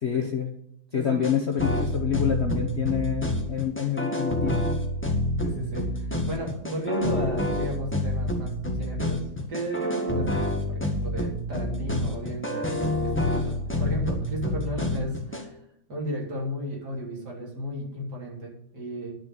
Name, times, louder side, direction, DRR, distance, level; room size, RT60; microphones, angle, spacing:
voice 1, 0.0-0.5 0.9-4.6, left 8 dB, 50° left, 4 dB, 0.9 m, -27 dB
voice 2, 0.9-1.2 5.4-9.2 9.5-13.5 13.8-15.6 15.9-19.1, equal, 60° right, -2 dB, 3.9 m, -34 dB
sound 1, 1.2-15.4, left 1 dB, 5° left, 1.3 m, -28 dB
10.5 x 5.9 x 8.2 m, 0.76 s
omnidirectional pair, 2.0 m